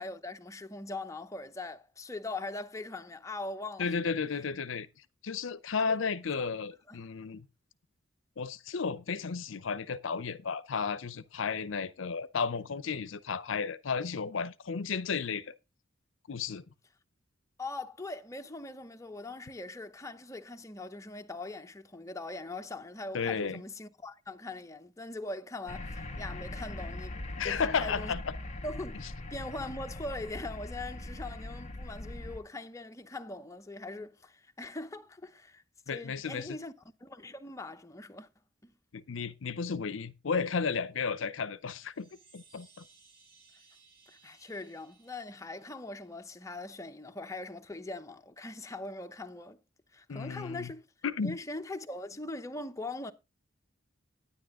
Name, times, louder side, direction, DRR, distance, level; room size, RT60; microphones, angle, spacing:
voice 1, 0.0-3.9 5.9-6.0 6.4-6.5 6.9-7.0 17.6-27.2 27.4-28.2 28.6-29.0 29.3-36.7 37.0-38.3 38.6-38.7 44.1-49.6 49.9-50.9 51.2-53.1, left 2 dB, 15° left, 0.8 m, -41 dB
voice 2, 3.8-4.9 5.2-7.5 8.4-15.5 16.3-16.6 23.1-23.6 27.4-28.3 35.9-36.6 38.9-42.8 50.1-50.7 51.0-51.4, left 5 dB, 70° left, 0.6 m, -33 dB
sound 1, 25.7-32.4, left 1 dB, 35° left, 1.5 m, -41 dB
Chime, 41.6-46.3, right 4 dB, 50° right, 4.3 m, -62 dB
10.0 x 9.9 x 3.6 m
head